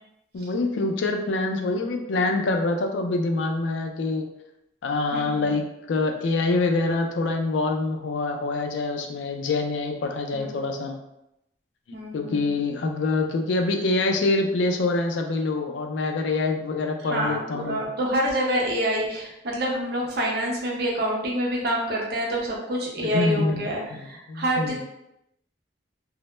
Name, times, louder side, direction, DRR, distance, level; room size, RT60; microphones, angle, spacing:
voice 1, 0.3-4.2 4.8-11.0 12.1-17.9 23.0-23.6 23.9-24.8, left 3 dB, 90° left, 4 dB, 0.4 m, -25 dB
voice 2, 5.1-5.5 10.3-10.5 11.9-12.5 17.0-24.8, equal, 60° right, -2 dB, 0.6 m, -27 dB
2.0 x 2.0 x 3.0 m, 0.84 s
head